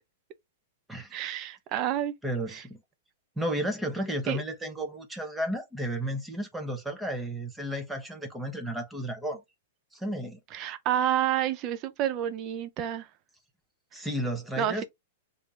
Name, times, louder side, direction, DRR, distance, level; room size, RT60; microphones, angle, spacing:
voice 1, 1.1-2.1 2.5-2.6 4.3-4.4 10.5-13.1 14.6-14.8, right 11 dB, 35° right, 0.6 m, -29 dB
voice 2, 2.2-2.7 3.4-9.4 9.9-10.4 13.9-14.8, right 1 dB, 5° right, 0.9 m, -33 dB
3.3 x 2.7 x 3.3 m
hypercardioid pair, 135°, 0 cm